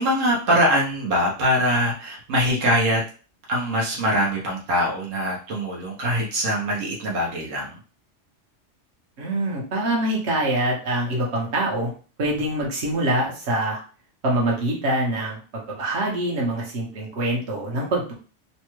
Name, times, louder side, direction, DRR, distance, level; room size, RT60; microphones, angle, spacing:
voice 1, 0.0-3.1 3.5-7.8, equal, 85° right, -3 dB, 1.2 m, -23 dB
voice 2, 9.2-11.9 12.2-13.8 14.2-18.1, right 1 dB, 60° right, -3 dB, 1.3 m, -24 dB
3.3 x 2.2 x 3.0 m, 0.38 s
omnidirectional pair, 1.3 m